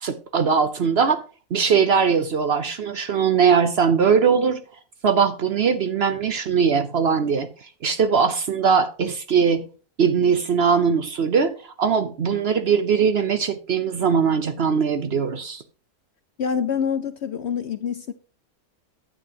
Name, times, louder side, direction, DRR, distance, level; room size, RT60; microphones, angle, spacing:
voice 1, 0.0-1.2 1.5-4.6 5.0-9.6 10.0-15.6, right 6 dB, 55° right, 0.8 m, -20 dB
voice 2, 16.4-18.1, left 7 dB, 60° left, 0.7 m, -26 dB
10.0 x 8.8 x 2.8 m
omnidirectional pair, 1.6 m